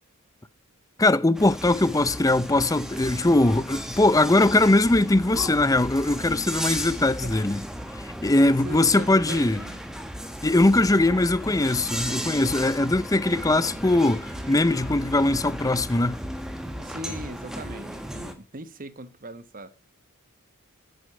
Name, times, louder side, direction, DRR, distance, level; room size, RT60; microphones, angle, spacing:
voice 1, 1.0-7.6 8.0-9.6 10.4-16.2, left 2 dB, 15° left, 0.6 m, -21 dB
sound 1, 1.3-18.3, equal, ahead, 1.6 m, -35 dB
voice 2, 8.4-9.8 16.8-19.7, right 1 dB, 40° right, 1.2 m, -40 dB
11.0 x 7.9 x 9.8 m
head